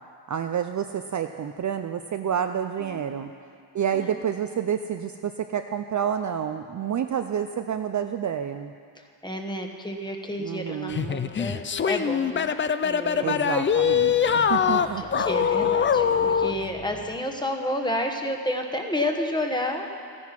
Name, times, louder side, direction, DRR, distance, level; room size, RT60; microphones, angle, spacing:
voice 1, 0.3-3.3 3.7-8.7 10.4-11.2 13.2-15.2, right 8 dB, 40° right, 7 dB, 0.5 m, -29 dB
voice 2, 2.8-3.3 3.9-4.1 8.9-12.5 12.8-13.5 14.6-19.9, left 1 dB, 10° left, 3 dB, 1.2 m, -31 dB
sound 1, 10.9-16.6, left 7 dB, 30° left, 0.3 m, -23 dB
sound 2, 13.6-17.2, right 1 dB, 50° left, 2.9 m, -46 dB
14.0 x 10.5 x 5.9 m, 2.3 s
cardioid pair, 105°, 48 cm